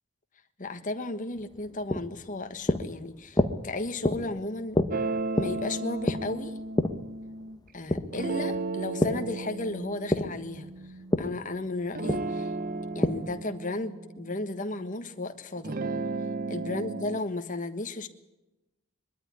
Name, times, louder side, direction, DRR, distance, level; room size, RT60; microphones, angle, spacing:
voice 1, 0.6-4.8 5.3-6.6 7.7-10.7 11.2-12.5 12.9-15.8 16.5-18.1, left 2 dB, 35° left, 7 dB, 1.5 m, -34 dB
sound 1, 1.3-9.3 9.6-13.4, left 1 dB, 20° left, 1.1 m, -30 dB
sound 2, 4.9-7.6 8.1-11.5 11.9-15.1 15.6-17.2, right 3 dB, 40° right, 0.6 m, -34 dB
22.0 x 13.0 x 9.8 m, 1.0 s
head